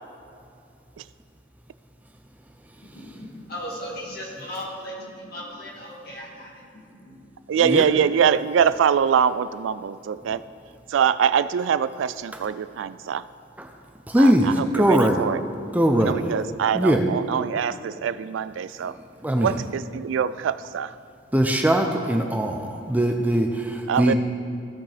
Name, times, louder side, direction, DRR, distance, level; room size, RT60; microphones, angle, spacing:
voice 1, 2.8-7.2, equal, 55° left, -4 dB, 2.2 m, -37 dB
voice 2, 7.5-10.4 10.9-13.3 14.2-15.4 16.0-19.0 19.4-21.0 23.9-24.1, right 7 dB, 90° right, 15 dB, 0.3 m, -23 dB
voice 3, 14.1-15.2 15.7-16.1 16.7-17.0 19.2-19.5 21.3-24.1, equal, 10° right, 3 dB, 0.5 m, -20 dB
16.0 x 5.8 x 3.4 m, 2.6 s
head